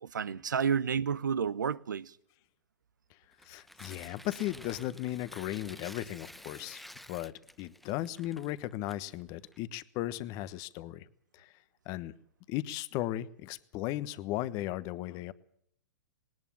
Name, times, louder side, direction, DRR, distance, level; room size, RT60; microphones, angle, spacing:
voice 1, 0.0-2.1, right 7 dB, 80° right, 0.9 m, -30 dB
Tearing, 3.3-9.6, left 1 dB, ahead, 0.8 m, -51 dB
voice 2, 3.4-11.1 11.3-11.5 11.8-12.1 12.5-15.3, left 15 dB, 40° left, 1.1 m, -36 dB
19.5 x 18.5 x 7.4 m
hypercardioid pair, 115°, 10 cm